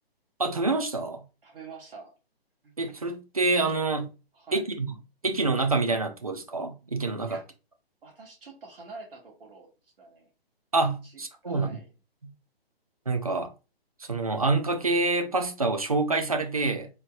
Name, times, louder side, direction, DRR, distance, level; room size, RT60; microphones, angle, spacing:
voice 1, 0.4-1.2 2.8-4.1 4.5-4.9 5.2-7.4 10.7-11.8 13.1-13.5 14.0-16.9, right 3 dB, 35° right, 0.4 m, -27 dB
voice 2, 1.4-2.1 4.3-4.7 7.3-7.4 8.0-9.7 10.0-10.3 11.0-11.9, right 4 dB, 65° right, 2.0 m, -46 dB
4.2 x 3.0 x 2.6 m
hypercardioid pair, 180°, 31 cm